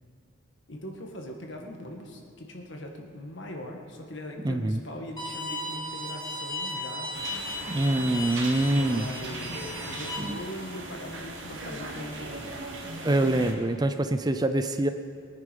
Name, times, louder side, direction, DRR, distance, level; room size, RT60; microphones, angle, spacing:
voice 1, 0.7-7.1 8.1-12.5 13.0-13.1, left 1 dB, 60° left, 1 dB, 1.9 m, -41 dB
voice 2, 4.4-4.8 7.7-9.1 10.2-10.4 13.0-14.9, right 1 dB, 20° right, 9 dB, 0.5 m, -25 dB
Bowed string instrument, 5.2-10.2, left 1 dB, 20° left, 2.5 m, -36 dB
sound 1, 7.1-13.5, right 2 dB, 60° right, 2.4 m, -38 dB
22.0 x 9.8 x 5.4 m, 2.5 s
head